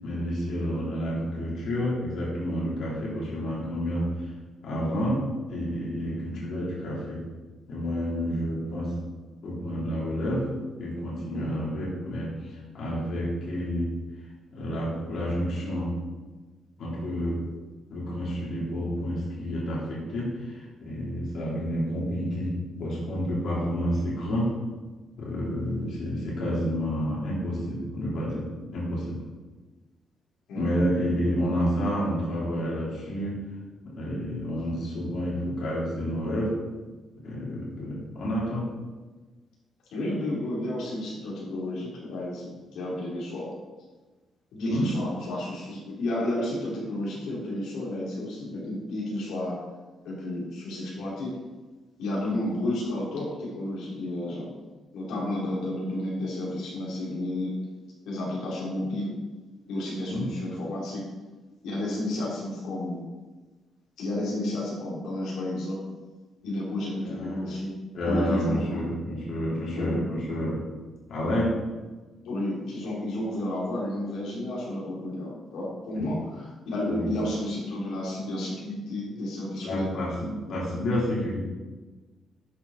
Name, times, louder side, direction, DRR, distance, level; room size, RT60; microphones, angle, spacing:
voice 1, 0.0-4.3 4.6-5.2 5.5-7.2 7.7-8.9 9.4-10.5 10.8-13.9 14.5-15.9 16.8-17.4 17.9-22.5 22.8-24.5 25.2-29.2 30.5-33.4 33.8-36.5 37.2-38.6 44.7-44.9 60.1-60.2 67.0-67.4 67.9-70.6 71.1-71.5 75.9-76.0 76.9-77.1 79.6-81.4, equal, 55° left, -5 dB, 3.9 m, -29 dB
voice 2, 30.5-30.8 39.9-43.5 44.5-49.6 50.0-51.4 52.0-54.5 54.9-57.5 58.1-59.1 59.7-61.1 61.6-63.0 64.0-65.8 66.4-67.7 68.0-68.8 69.8-70.0 72.2-79.9, left 1 dB, 85° left, -5 dB, 3.6 m, -31 dB
12.0 x 8.5 x 4.4 m, 1.3 s
cardioid pair, 175°, 0 cm